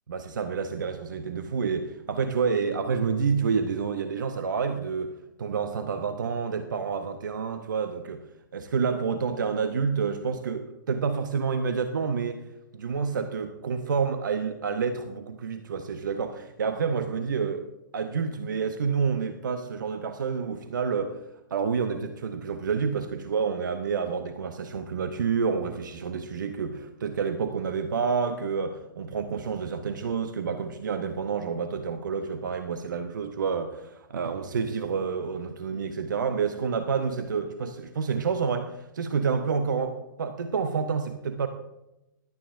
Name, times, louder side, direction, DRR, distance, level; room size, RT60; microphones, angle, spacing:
voice 1, 0.1-8.2 8.5-12.4 12.7-17.7 17.9-21.2 21.5-41.5, right 5 dB, 65° right, 8 dB, 0.8 m, -29 dB
17.0 x 12.0 x 2.6 m, 0.93 s
figure-of-eight pair, 120°, 11 cm